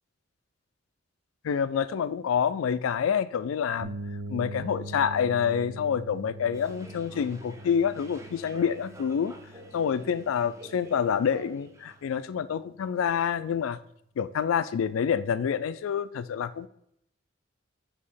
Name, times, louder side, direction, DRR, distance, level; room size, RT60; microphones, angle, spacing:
voice 1, 1.4-3.9 4.3-9.3 9.7-13.8 14.2-16.7, left 7 dB, 85° left, 15 dB, 0.3 m, -27 dB
sound 1, 3.8-11.5, right 1 dB, 90° right, 0.5 m, -42 dB
sound 2, 6.5-12.3, right 2 dB, 15° right, 0.6 m, -49 dB
6.2 x 2.8 x 5.5 m, 0.73 s
head